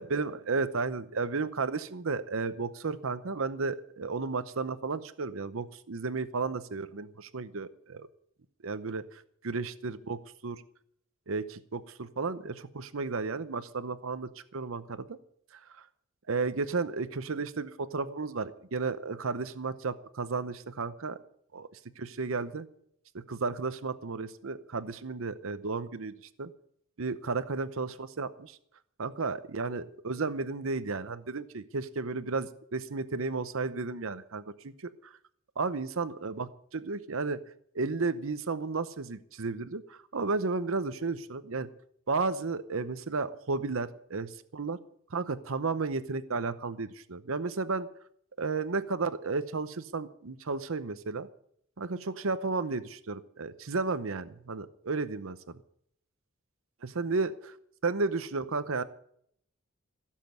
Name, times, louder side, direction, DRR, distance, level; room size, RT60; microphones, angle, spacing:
voice 1, 0.0-8.1 8.6-10.6 11.3-15.2 15.5-15.8 16.3-21.2 21.5-21.7 22.0-22.6 23.3-26.1 26.4-26.5 27.0-28.6 29.0-35.1 35.6-37.4 37.7-41.7 42.1-44.8 45.1-47.9 48.4-51.3 51.8-55.4 56.8-57.3 57.8-58.8, right 4 dB, 70° right, 13 dB, 0.8 m, -33 dB
16.5 x 7.5 x 9.3 m, 0.68 s
head